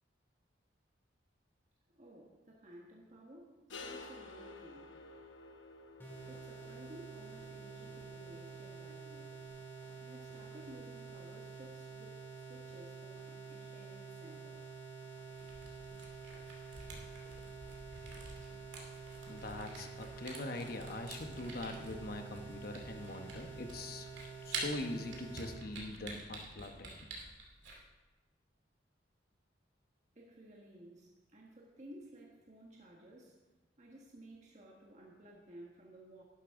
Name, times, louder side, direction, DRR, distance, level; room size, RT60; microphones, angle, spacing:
voice 1, 1.9-3.6 3.8-4.9 6.2-9.3 10.0-14.6 30.1-33.4 33.8-36.2, right 1 dB, 40° right, -2 dB, 1.5 m, -55 dB
sound 1, 3.7-9.5, left 3 dB, 80° left, 0.9 m, -53 dB
sound 2, 6.0-25.6, right 5 dB, 10° left, 2.3 m, -49 dB
Camera, 15.3-27.8, right 3 dB, 70° right, 2.4 m, -48 dB
voice 2, 19.3-24.1 24.4-27.0, left 2 dB, 50° left, 5 dB, 1.1 m, -43 dB
12.0 x 11.0 x 3.7 m, 1.2 s
head